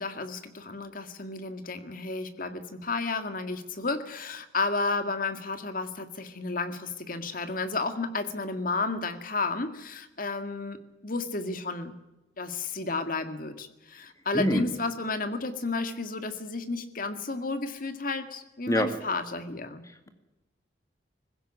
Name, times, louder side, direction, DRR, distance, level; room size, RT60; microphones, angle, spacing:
voice 1, 0.0-10.8 11.0-11.9 12.4-20.1, left 3 dB, 45° left, 9 dB, 1.9 m, -32 dB
voice 2, 14.3-14.6 18.7-18.9, left 1 dB, 15° left, 8 dB, 1.9 m, -24 dB
20.0 x 16.5 x 9.9 m, 1.0 s
head